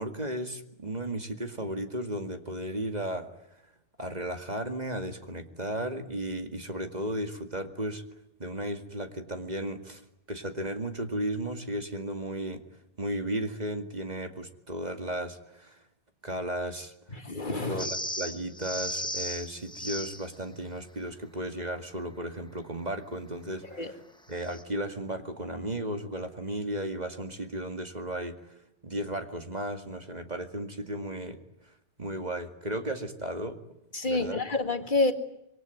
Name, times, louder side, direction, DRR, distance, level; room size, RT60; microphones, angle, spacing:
voice 1, 0.0-3.3 4.0-8.0 8.4-10.0 10.3-12.6 13.0-15.8 16.2-17.2 17.7-24.0 24.3-28.4 28.8-31.4 32.0-33.6 34.1-34.4, right 1 dB, 40° right, 6 dB, 2.3 m, -34 dB
voice 2, 17.2-17.9 23.8-23.9 33.9-35.1, left 3 dB, 45° left, 7 dB, 2.0 m, -28 dB
sound 1, 17.8-20.3 24.4-24.6, equal, 5° left, 1.5 m, -35 dB
26.0 x 23.5 x 9.3 m, 0.82 s
omnidirectional pair, 1.1 m